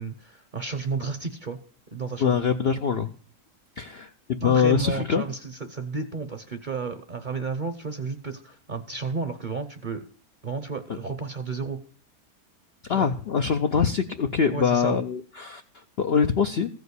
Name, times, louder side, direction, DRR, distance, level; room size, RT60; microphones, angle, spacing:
voice 1, 0.0-1.6 1.9-2.4 4.4-10.0 10.4-11.8 12.9-13.1 14.5-15.0, right 4 dB, 40° right, 9 dB, 0.8 m, -32 dB
voice 2, 2.2-3.1 3.8-5.2 12.9-16.7, left 6 dB, 60° left, 6 dB, 0.6 m, -24 dB
15.0 x 5.1 x 8.2 m, 0.42 s
omnidirectional pair, 1.8 m